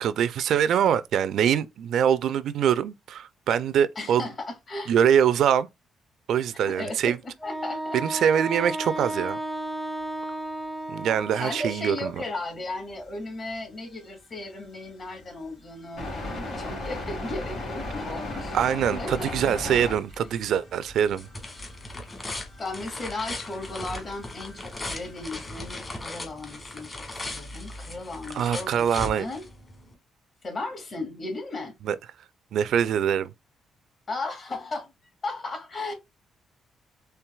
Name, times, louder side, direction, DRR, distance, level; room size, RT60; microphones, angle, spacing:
voice 1, 0.0-4.2 4.9-5.7 6.3-7.2 7.9-9.4 10.9-12.1 18.5-21.3 28.3-29.2 31.8-32.0 32.5-33.3, right 9 dB, 75° right, 0.4 m, -23 dB
voice 2, 4.0-4.9 6.6-7.0 7.4-8.2 11.3-18.6 18.9-19.3 19.7-19.8 22.6-29.4 30.4-31.7 34.1-34.9 35.2-35.9, left 2 dB, 45° left, 2.4 m, -35 dB
Wind instrument woodwind instrument, 7.4-12.0, right 1 dB, ahead, 0.5 m, -33 dB
sound 1, 11.9-12.0 15.1-15.2 16.0-25.5, left 2 dB, 85° left, 2.3 m, -37 dB
sound 2, 20.5-29.9, left 2 dB, 30° left, 1.5 m, -38 dB
4.5 x 3.3 x 2.3 m
cardioid pair, 90°, 0 cm